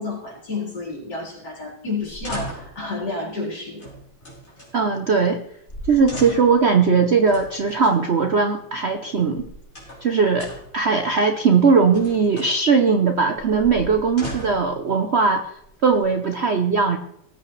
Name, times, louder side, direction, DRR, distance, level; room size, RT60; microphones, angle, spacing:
voice 1, 0.0-3.9, left 3 dB, 60° left, -6 dB, 5.1 m, -30 dB
sound 1, 2.0-2.8 3.8-4.7 5.4-5.5 5.7-6.6 7.3-8.0 9.1-10.1 10.4-10.8 11.7-12.6 13.4-14.7 15.5-16.2, equal, 35° left, 4.7 m, -37 dB
voice 2, 4.7-5.4 5.9-9.5 10.0-15.5 15.8-17.0, right 5 dB, 65° right, 6 dB, 0.6 m, -19 dB
19.0 x 8.3 x 3.2 m, 0.77 s
omnidirectional pair, 2.1 m